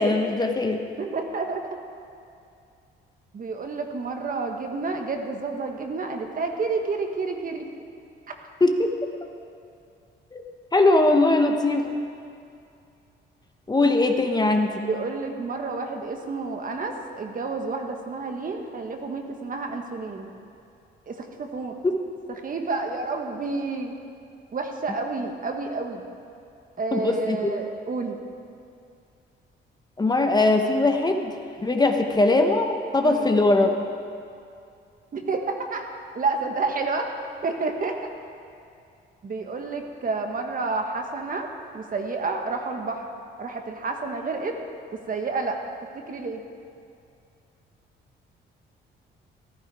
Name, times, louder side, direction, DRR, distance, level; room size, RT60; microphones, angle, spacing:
voice 1, 0.0-0.8 8.6-8.9 10.3-10.4 10.7-11.9 13.7-14.7 21.8-21.9 26.9-27.5 30.0-31.3 31.6-33.7, left 2 dB, 20° left, 4 dB, 1.0 m, -21 dB
voice 2, 1.0-1.6 3.3-7.7 14.8-20.3 21.1-21.7 22.4-23.9 24.5-26.1 26.8-28.2 33.0-33.3 35.1-37.1 37.4-38.0 39.2-41.5 41.7-43.1 43.4-44.6 45.1-45.6 45.9-46.4, right 3 dB, 45° right, 3 dB, 1.5 m, -30 dB
14.5 x 12.5 x 4.8 m, 2.5 s
cardioid pair, 90°, 20 cm